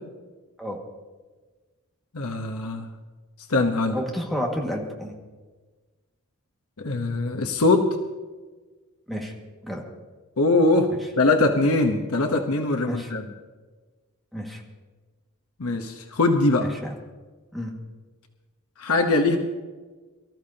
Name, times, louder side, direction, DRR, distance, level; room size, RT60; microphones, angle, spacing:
voice 1, 2.1-2.9 3.5-4.0 6.8-7.9 10.4-13.3 15.6-16.7 18.8-19.4, left 2 dB, 75° left, 4 dB, 1.0 m, -22 dB
voice 2, 3.9-5.1 9.1-9.3 9.6-9.8 12.8-13.1 14.3-14.6 16.8-16.9 17.5-17.7, equal, ahead, -1 dB, 1.9 m, -30 dB
24.0 x 13.5 x 2.9 m, 1.3 s
head